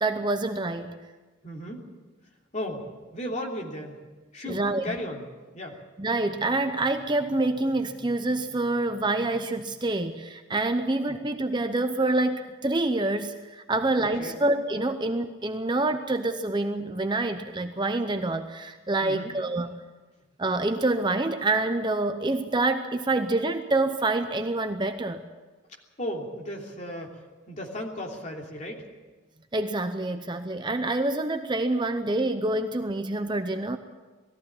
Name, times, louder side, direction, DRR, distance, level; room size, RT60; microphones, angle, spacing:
voice 1, 0.0-1.0 4.5-5.0 6.0-19.7 20.4-25.2 29.5-33.8, right 2 dB, 20° right, 7 dB, 0.7 m, -27 dB
voice 2, 1.4-1.8 2.5-2.8 3.1-4.0 4.3-5.2 5.5-5.8 11.1-11.2 14.2-14.4 19.0-19.3 26.0-27.2 27.5-28.9, left 1 dB, 35° left, -1 dB, 3.1 m, -35 dB
20.0 x 14.5 x 8.8 m, 1.3 s
head